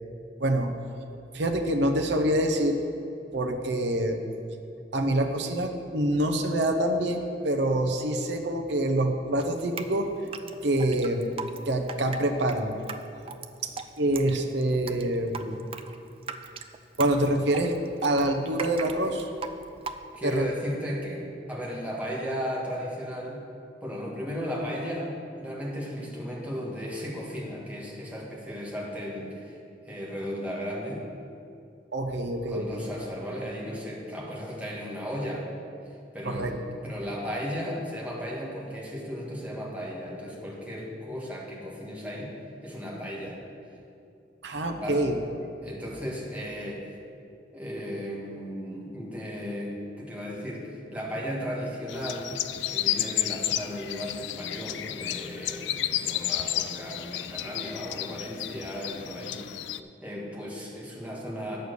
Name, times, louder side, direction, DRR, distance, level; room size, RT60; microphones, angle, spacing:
voice 1, 0.4-0.7 1.3-2.8 3.3-4.2 4.9-10.1 10.6-11.3 11.7-12.7 14.0-15.6 17.0-17.8 18.0-19.3 20.2-20.5 31.9-32.8 36.3-36.5 44.4-45.2, right 1 dB, 70° right, 4 dB, 0.8 m, -26 dB
Drip, 9.4-20.4, right 5 dB, 30° right, 0.4 m, -40 dB
voice 2, 20.1-23.4 23.8-25.1 25.4-29.6 29.8-31.1 32.5-35.5 35.8-42.3 42.6-43.4 44.7-45.1 45.6-46.8 47.5-52.3 52.7-59.4 60.0-61.6, equal, 10° right, -4 dB, 1.6 m, -35 dB
sound 1, 51.9-59.8, left 12 dB, 70° left, 0.3 m, -32 dB
8.6 x 6.6 x 6.7 m, 2.7 s
head